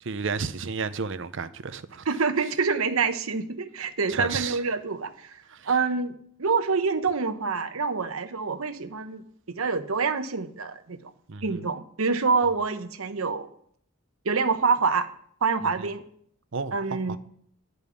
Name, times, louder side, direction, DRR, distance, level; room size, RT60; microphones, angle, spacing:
voice 1, 0.0-2.1 4.1-4.6 5.5-5.8 11.3-11.6 15.8-15.9 16.5-17.2, right 5 dB, 60° right, 0.6 m, -32 dB
voice 2, 2.1-5.4 5.7-9.2 9.5-11.0 11.4-13.5 14.2-15.1 15.4-16.0 16.7-17.2, right 4 dB, 85° right, 1.0 m, -26 dB
11.5 x 5.3 x 8.3 m
head